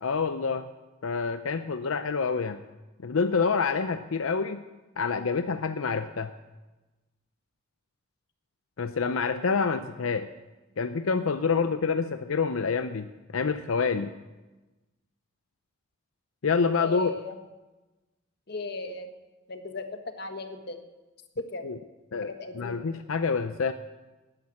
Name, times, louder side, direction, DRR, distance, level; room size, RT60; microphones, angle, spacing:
voice 1, 0.0-0.7 1.0-2.6 3.0-4.6 5.0-6.3 8.8-10.3 10.8-14.1 16.4-17.1 21.6-21.8 22.1-23.7, left 5 dB, 85° left, 10 dB, 0.6 m, -27 dB
voice 2, 16.7-17.4 18.5-19.1 19.5-19.9 20.2-20.8 21.5-21.7 22.2-22.9, left 3 dB, 50° left, 6 dB, 1.4 m, -37 dB
12.5 x 10.0 x 8.7 m, 1.1 s
head